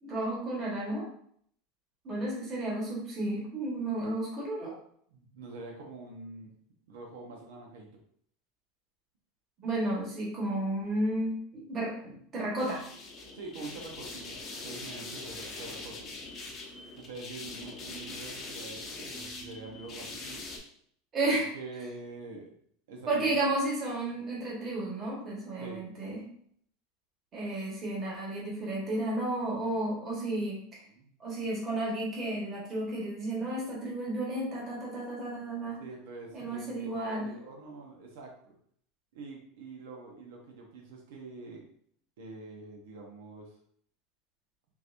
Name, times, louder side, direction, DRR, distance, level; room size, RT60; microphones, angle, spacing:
voice 1, 0.0-1.1 2.0-4.8 9.6-12.8 21.1-21.5 23.1-26.2 27.3-30.8 31.2-35.8 36.3-37.3, right 1 dB, 25° right, -4 dB, 1.3 m, -32 dB
voice 2, 5.1-6.5 6.9-7.9 13.3-14.4 14.6-15.9 17.0-20.4 21.5-22.5 22.9-23.4 25.6-25.8 30.9-31.2 35.8-38.5 39.1-41.6 42.2-43.5, right 3 dB, 85° right, 0 dB, 0.9 m, -45 dB
sound 1, 12.6-20.6, left 3 dB, 30° left, 0.7 m, -42 dB
3.8 x 3.0 x 2.5 m, 0.64 s
supercardioid pair, 160°, 0 cm